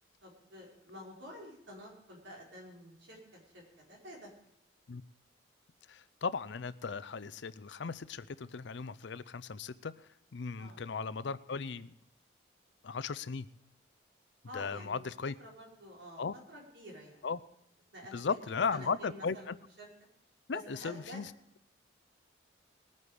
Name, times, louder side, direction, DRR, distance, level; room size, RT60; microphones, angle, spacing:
voice 1, 0.2-4.3 10.6-10.8 14.5-15.0 15.4-16.2 16.5-17.3 17.9-19.9 20.5-21.2, equal, 70° right, -2 dB, 4.7 m, -50 dB
voice 2, 5.9-9.9 10.3-11.9 12.8-13.5 14.5-15.3 16.2-16.3 17.2-17.4 18.1-19.6 20.5-21.3, left 5 dB, 70° left, 17 dB, 0.5 m, -36 dB
20.0 x 9.5 x 5.0 m, 0.78 s
head